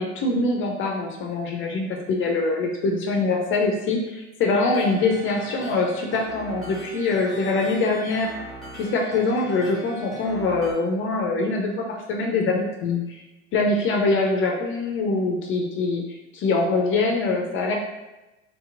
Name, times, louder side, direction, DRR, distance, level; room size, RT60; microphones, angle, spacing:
voice 1, 0.0-8.3 8.7-13.0 13.5-16.0 16.3-17.7, left 3 dB, 35° left, 1 dB, 0.5 m, -23 dB
sound 1, 4.7-10.7, right 1 dB, ahead, 0.8 m, -40 dB
3.8 x 2.8 x 2.4 m, 1.0 s
hypercardioid pair, 80°, 35 cm